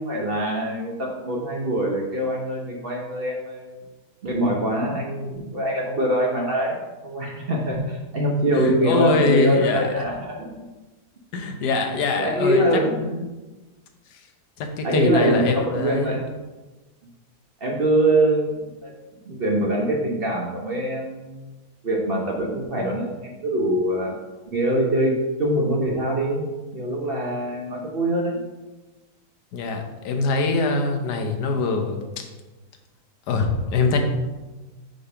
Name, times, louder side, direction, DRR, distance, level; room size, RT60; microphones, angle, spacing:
voice 1, 0.0-3.8 4.2-10.6 12.1-13.2 14.8-16.3 17.6-18.9 19.2-21.5 21.8-24.1 24.5-28.4, right 1 dB, 45° right, -1 dB, 0.9 m, -24 dB
voice 2, 8.5-9.9 11.3-13.3 14.6-16.2 29.5-32.2 33.3-34.0, left 3 dB, 85° left, 5 dB, 1.4 m, -23 dB
5.1 x 3.9 x 5.5 m, 1.2 s
omnidirectional pair, 1.7 m